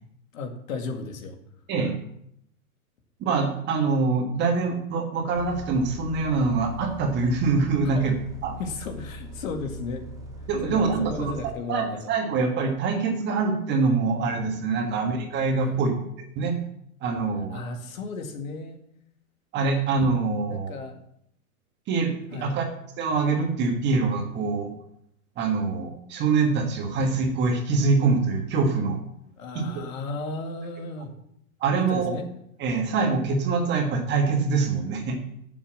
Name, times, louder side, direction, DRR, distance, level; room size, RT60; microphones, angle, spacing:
voice 1, 0.3-1.4 7.8-8.1 8.6-10.1 10.6-12.0 14.8-14.9 15.6-15.8 17.5-18.8 20.5-21.0 22.3-22.6 29.4-31.1 31.7-32.3, left 4 dB, 65° left, 4 dB, 2.2 m, -34 dB
voice 2, 3.2-8.1 8.4-8.5 10.5-11.3 11.7-16.0 16.3-16.6 17.0-17.6 19.5-20.7 21.9-22.1 22.4-22.7 23.0-24.7 25.4-29.0 29.5-29.7 31.6-32.2 32.6-35.2, right 4 dB, 25° right, 4 dB, 1.5 m, -24 dB
Bus, 5.3-11.6, right 1 dB, 10° right, 0.5 m, -40 dB
8.2 x 7.3 x 7.4 m, 0.73 s
hypercardioid pair, 150°, 43 cm